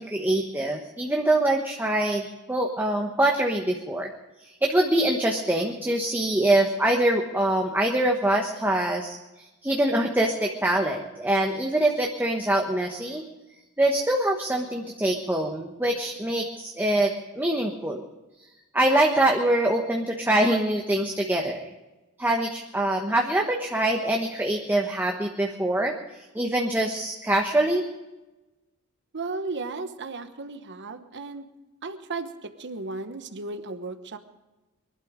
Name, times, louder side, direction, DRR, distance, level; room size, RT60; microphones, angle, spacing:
voice 1, 0.0-4.1 4.6-13.2 13.8-18.0 18.7-21.7 22.2-26.0 26.3-27.9, right 1 dB, 10° right, 1 dB, 1.1 m, -24 dB
voice 2, 29.1-31.5 31.8-34.2, right 3 dB, 55° right, 9 dB, 1.1 m, -35 dB
22.5 x 12.0 x 5.1 m, 1.1 s
head